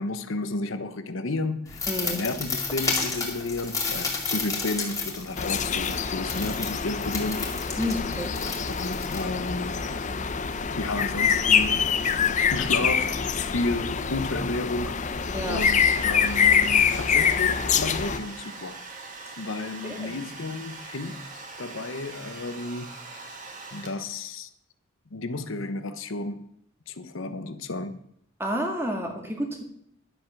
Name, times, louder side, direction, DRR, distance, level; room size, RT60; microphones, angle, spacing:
voice 1, 0.0-7.4 8.8-9.8 10.8-12.2 12.5-13.2 13.5-15.0 15.4-18.8 19.4-23.3 23.7-24.5 25.1-26.5 26.9-28.0, left 2 dB, 75° left, 0.9 m, -32 dB
sound 1, 1.7-9.7, left 4 dB, 15° left, 2.3 m, -32 dB
voice 2, 1.9-2.2 7.8-8.4 15.3-15.6 19.8-20.2 28.4-29.6, equal, 10° right, 1.8 m, -30 dB
sound 2, 5.4-18.2, left 6 dB, 35° left, 0.6 m, -25 dB
Domestic sounds home sounds, 15.1-24.3, right 3 dB, 40° right, 2.0 m, -42 dB
11.0 x 7.9 x 6.0 m
head